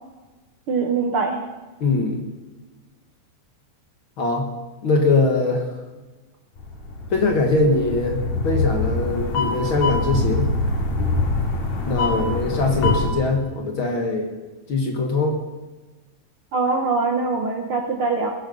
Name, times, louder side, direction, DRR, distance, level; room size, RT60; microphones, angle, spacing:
voice 1, 0.7-1.5 12.1-12.2 16.5-18.3, right 4 dB, 55° right, 2 dB, 1.6 m, -23 dB
voice 2, 1.8-2.2 4.2-4.5 4.8-5.7 7.1-8.2 8.4-10.5 11.8-14.3 14.7-15.4, left 3 dB, 50° left, 2 dB, 1.9 m, -21 dB
sound 1, 6.6-13.1, left 3 dB, 90° left, 4.0 m, -24 dB
20.0 x 10.0 x 5.4 m, 1.2 s
omnidirectional pair, 3.6 m